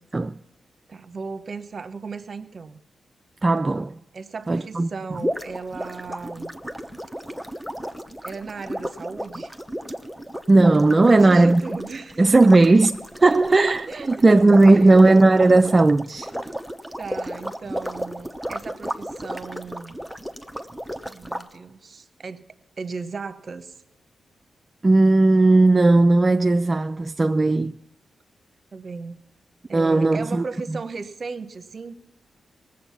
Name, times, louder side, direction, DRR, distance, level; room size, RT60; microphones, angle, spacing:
voice 1, 0.9-2.8 4.1-6.5 8.2-9.5 11.1-12.5 13.2-13.4 13.9-15.0 16.1-16.6 17.0-20.0 21.1-22.4 22.8-23.8 28.7-29.2 29.7-31.9, right 4 dB, 55° right, 0.9 m, -36 dB
voice 2, 3.4-4.0 4.5-4.9 10.5-11.7 12.2-12.9 13.2-16.3 24.8-27.7 29.7-30.8, right 2 dB, 35° right, 0.4 m, -16 dB
sound 1, 5.1-21.4, equal, ahead, 1.0 m, -33 dB
18.5 x 7.8 x 5.7 m
supercardioid pair, 45°, 0 cm